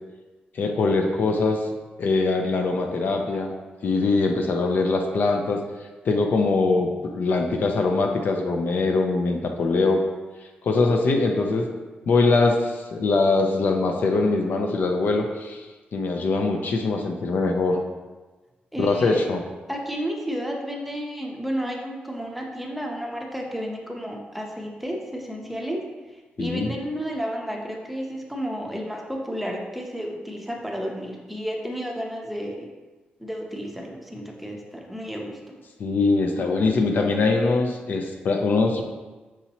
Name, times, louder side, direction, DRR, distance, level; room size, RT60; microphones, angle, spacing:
voice 1, 0.5-1.7 2.0-3.6 3.8-5.6 6.0-10.0 10.6-11.7 12.1-15.7 15.9-17.8 18.8-19.4 26.4-26.7 35.8-38.8, left 3 dB, 65° left, 3 dB, 0.4 m, -22 dB
voice 2, 18.7-19.2 19.7-25.8 26.4-32.7 33.2-35.5, equal, 5° right, 0 dB, 0.6 m, -32 dB
6.0 x 2.8 x 2.8 m, 1.2 s
cardioid pair, 100°, 3 cm